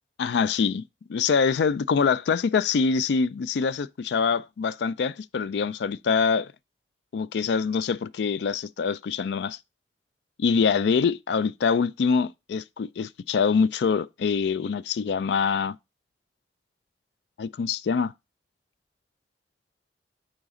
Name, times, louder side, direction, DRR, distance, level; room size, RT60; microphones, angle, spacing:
voice 1, 0.2-0.8 1.1-6.5 7.1-9.6 10.4-15.8 17.4-18.1, left 5 dB, 75° left, 0.4 m, -24 dB
9.0 x 4.0 x 3.6 m
head